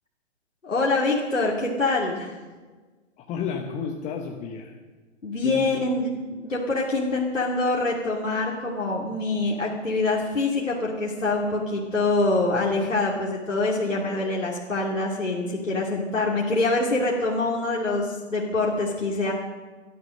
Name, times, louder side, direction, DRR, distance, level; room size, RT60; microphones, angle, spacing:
voice 1, 0.6-2.3 5.2-6.1 6.4-19.3, left 2 dB, 90° left, -3 dB, 2.7 m, -25 dB
voice 2, 3.2-4.7 5.4-5.8, left 6 dB, 20° left, 3 dB, 1.1 m, -32 dB
17.0 x 13.0 x 6.4 m, 1.4 s
figure-of-eight pair, 125°, 37 cm